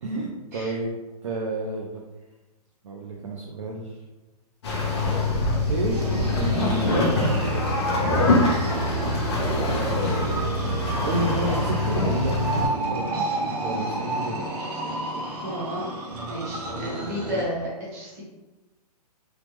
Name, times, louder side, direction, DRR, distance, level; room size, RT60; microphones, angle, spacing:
voice 1, 0.0-2.0 2.8-4.0 5.7-6.0 6.4-7.5 9.2-14.4, right 2 dB, 50° right, -2 dB, 0.4 m, -31 dB
sound 1, 4.6-12.7, left 2 dB, 45° left, 0.7 m, -24 dB
sound 2, 5.9-17.4, right 2 dB, 75° right, 1.1 m, -32 dB
voice 2, 15.4-15.9 16.3-18.2, equal, 25° right, -6 dB, 0.9 m, -32 dB
3.2 x 2.0 x 3.1 m, 1.1 s
hypercardioid pair, 175°, 20 cm